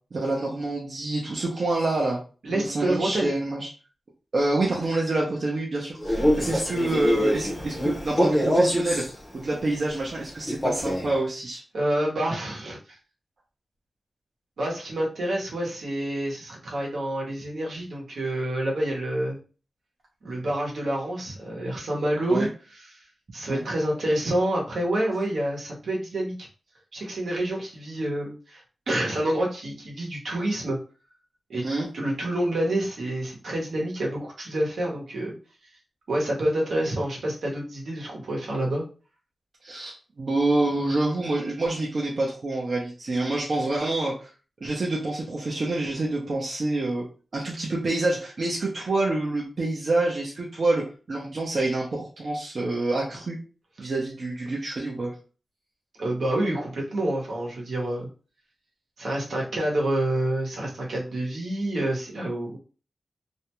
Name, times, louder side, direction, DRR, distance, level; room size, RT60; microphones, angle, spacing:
voice 1, 0.1-2.2 2.5-3.7 4.3-9.1 9.3-11.6 22.3-22.5 23.5-23.6 31.6-31.9 39.6-44.3 44.6-47.1 47.3-53.4 53.8-55.1, right 2 dB, 45° right, -3 dB, 0.6 m, -27 dB
voice 2, 2.4-3.3 11.7-12.8 14.6-19.4 20.2-22.5 22.9-23.0 23.3-26.3 26.9-30.8 31.5-31.7 31.9-35.3 36.1-38.8 56.0-58.1 59.0-62.6, right 1 dB, 70° right, -2 dB, 0.9 m, -28 dB
Male speech man speaking, 6.0-9.1 10.5-11.1, equal, 15° left, 0.6 m, -24 dB
2.5 x 2.1 x 2.9 m, 0.36 s
wide cardioid pair, 160°, 0 cm